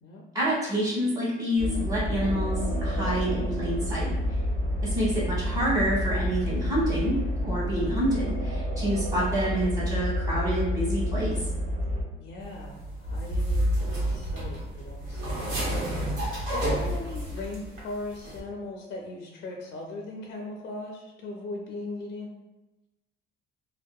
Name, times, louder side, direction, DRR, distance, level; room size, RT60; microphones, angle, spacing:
voice 1, 0.3-4.1 4.8-11.4, equal, 20° right, -7 dB, 1.1 m, -28 dB
sound 1, 1.6-12.0, equal, 40° right, 1.1 m, -29 dB
voice 2, 12.2-15.7 16.2-22.3, left 2 dB, 55° left, -1 dB, 0.4 m, -38 dB
sound 2, 12.4-17.8 18.1-18.4, right 1 dB, 80° right, 1.0 m, -30 dB
2.7 x 2.0 x 2.2 m, 1.0 s
cardioid pair, 135°, 20 cm